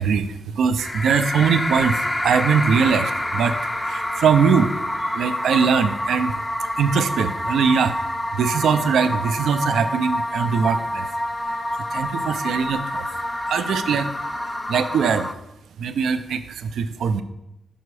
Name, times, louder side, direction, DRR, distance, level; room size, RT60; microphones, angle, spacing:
voice 1, 0.0-3.6 3.8-4.7 5.1-6.4 6.8-8.0 8.3-11.1 11.9-13.1 13.5-14.1 14.7-15.3 15.8-17.2, right 6 dB, 90° right, 10 dB, 0.4 m, -21 dB
sound 1, 0.8-15.3, left 1 dB, 10° left, 0.3 m, -27 dB
5.5 x 5.1 x 4.8 m, 0.88 s
wide cardioid pair, 130°, 0 cm